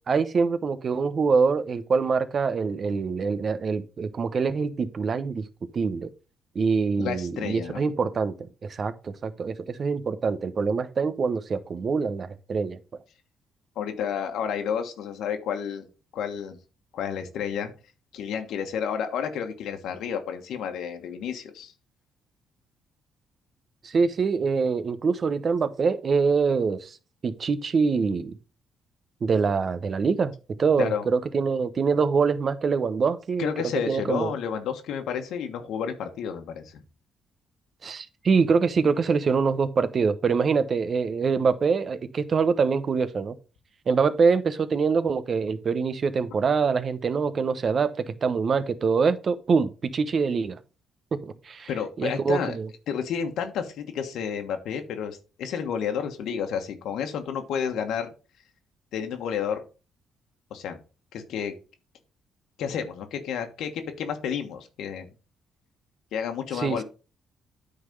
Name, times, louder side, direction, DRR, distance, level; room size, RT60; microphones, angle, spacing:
voice 1, 0.1-5.4 5.7-6.1 6.5-8.3 8.6-12.8 23.8-27.0 27.2-28.4 29.2-30.3 30.6-33.5 33.9-34.3 37.8-43.3 43.9-50.6 51.2-51.7 52.0-52.7 66.5-66.8, right 5 dB, 45° right, 0.9 m, -24 dB
voice 2, 7.0-7.8 13.7-15.9 16.1-16.6 16.9-17.7 18.1-21.7 30.8-31.1 33.4-36.8 51.7-52.6 52.9-58.1 58.9-59.6 60.5-60.8 61.1-61.5 62.6-65.1 66.1-66.8, left 7 dB, 80° left, 1.2 m, -31 dB
9.3 x 4.0 x 5.3 m
cardioid pair, 90°, 0 cm